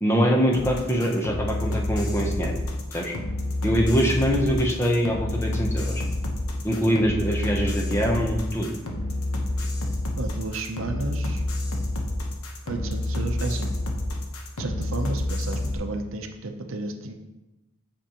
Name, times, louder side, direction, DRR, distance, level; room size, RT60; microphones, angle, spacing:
voice 1, 0.0-2.5 2.9-3.1 3.6-6.0 6.6-8.7, equal, 10° left, 0 dB, 0.7 m, -23 dB
sound 1, 0.5-15.8, left 1 dB, 85° left, 0.9 m, -28 dB
voice 2, 10.2-11.4 12.7-13.7 14.6-17.1, right 2 dB, 65° right, 5 dB, 0.7 m, -32 dB
7.7 x 5.2 x 2.9 m, 1.0 s
head